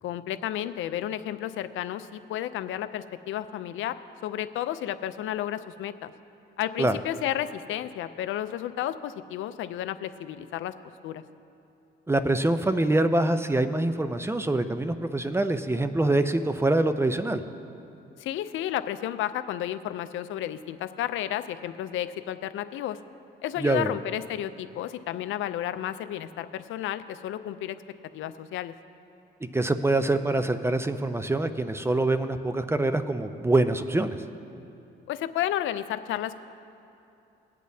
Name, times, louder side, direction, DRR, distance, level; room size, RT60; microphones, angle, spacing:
voice 1, 0.0-6.1 6.6-10.7 11.0-11.2 18.2-23.0 23.4-27.8 28.1-28.7 35.1-36.4, left 12 dB, 80° left, 12 dB, 0.5 m, -32 dB
voice 2, 12.1-17.4 23.6-23.9 29.5-34.2, right 2 dB, 10° right, 10 dB, 0.5 m, -25 dB
21.0 x 8.3 x 2.7 m, 2.8 s
cardioid pair, 90°, 20 cm